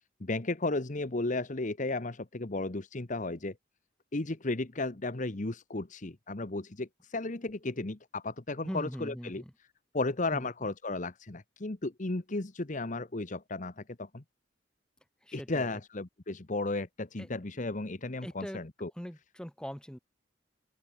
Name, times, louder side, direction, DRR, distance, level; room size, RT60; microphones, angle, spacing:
voice 1, 0.2-3.5 4.1-9.4 9.9-14.2 15.3-18.9, left 2 dB, 45° left, 1.2 m, -34 dB
voice 2, 8.6-9.5 10.3-10.5 15.2-15.8 17.2-17.3 18.2-20.0, equal, 5° left, 4.7 m, -41 dB
open air
head